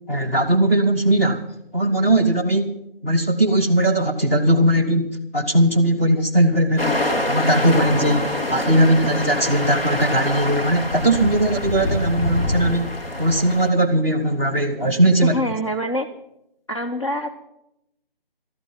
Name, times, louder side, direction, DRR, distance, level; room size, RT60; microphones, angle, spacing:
voice 1, 0.1-1.4 1.7-2.7 3.0-15.4, right 1 dB, 15° left, -1 dB, 1.2 m, -19 dB
sound 1, 6.8-13.7, left 1 dB, 85° left, 3.4 m, -25 dB
voice 2, 15.3-16.1 16.7-17.3, equal, 35° left, 3 dB, 0.8 m, -25 dB
14.0 x 13.5 x 5.4 m, 0.81 s
figure-of-eight pair, 165°, 29 cm